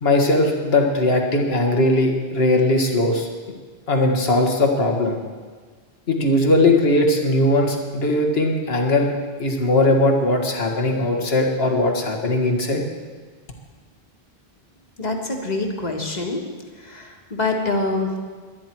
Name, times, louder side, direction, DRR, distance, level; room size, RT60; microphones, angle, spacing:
voice 1, 0.0-3.3 3.9-5.2 6.1-9.1 9.4-12.8, left 2 dB, 75° left, 2 dB, 1.9 m, -19 dB
voice 2, 15.0-16.4 16.8-18.2, left 2 dB, 45° left, 1 dB, 1.9 m, -25 dB
22.0 x 10.5 x 4.6 m, 1.5 s
omnidirectional pair, 1.0 m